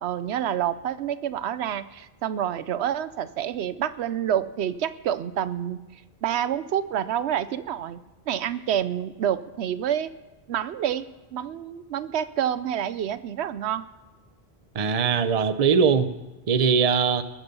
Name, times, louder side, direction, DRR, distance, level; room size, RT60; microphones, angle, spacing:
voice 1, 0.0-5.8 6.2-8.0 8.3-10.1 10.5-11.1 11.3-13.9, right 10 dB, 85° right, 14 dB, 0.9 m, -28 dB
voice 2, 14.7-16.1 16.5-17.2, right 6 dB, 40° right, 11 dB, 0.7 m, -21 dB
21.0 x 7.4 x 5.3 m, 1.1 s
omnidirectional pair, 1.1 m